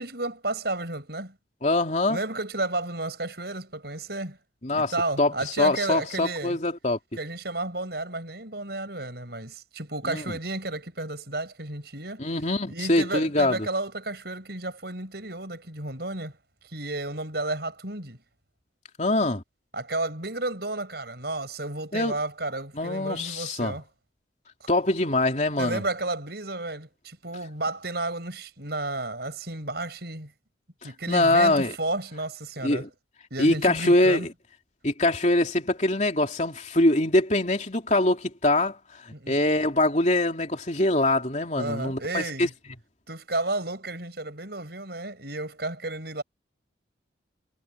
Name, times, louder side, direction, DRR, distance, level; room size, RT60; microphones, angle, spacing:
voice 1, 0.0-1.4 2.1-4.4 4.7-6.6 7.2-12.2 12.7-16.4 16.7-18.2 19.7-23.8 24.6-24.7 25.6-30.3 30.8-32.9 33.3-34.3 39.1-39.4 41.5-42.5 43.1-46.2, right 2 dB, 60° right, 7.6 m, -32 dB
voice 2, 1.6-2.2 4.6-4.9 5.2-5.3 5.6-7.0 10.0-10.2 12.2-13.7 19.0-19.4 21.9-22.1 22.8-23.7 24.7-25.8 31.1-31.7 32.6-32.9 33.4-34.2 34.8-38.8 39.0-42.5, left 2 dB, 40° left, 3.2 m, -23 dB
head